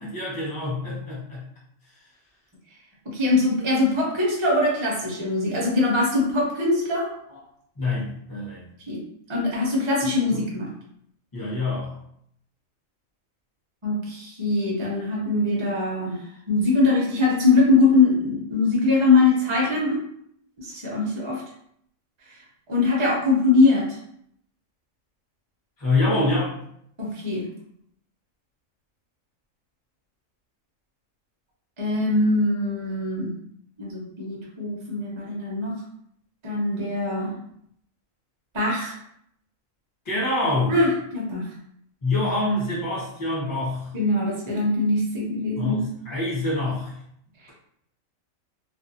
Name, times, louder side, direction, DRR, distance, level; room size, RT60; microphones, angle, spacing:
voice 1, 0.0-1.4 7.8-8.7 10.3-10.5 11.3-12.0 25.8-26.5 40.0-40.8 42.0-43.9 45.5-47.0, left 2 dB, 20° left, -7 dB, 0.8 m, -26 dB
voice 2, 3.1-7.4 8.9-9.0 9.3-10.7 13.8-20.0 20.6-21.4 22.7-24.0 27.0-27.5 31.8-33.3 33.8-35.7 36.4-37.3 38.5-39.0 40.7-41.5 43.9-45.8, left 3 dB, 35° right, -3 dB, 0.4 m, -22 dB
2.5 x 2.4 x 2.6 m, 0.71 s
omnidirectional pair, 1.4 m